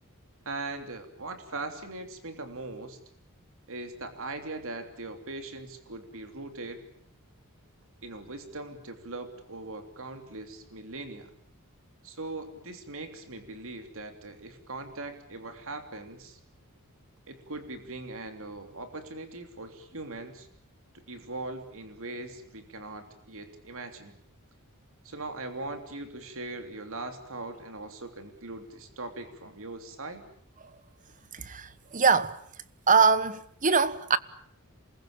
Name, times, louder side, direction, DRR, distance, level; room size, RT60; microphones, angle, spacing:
voice 1, 0.4-3.0 3.7-6.9 8.0-11.3 12.0-16.4 17.3-20.5 20.9-24.1 25.0-30.2, right 2 dB, 65° right, 3.2 m, -40 dB
voice 2, 31.3-32.4 32.9-34.2, right 5 dB, 35° right, 1.2 m, -23 dB
28.0 x 21.5 x 8.8 m
head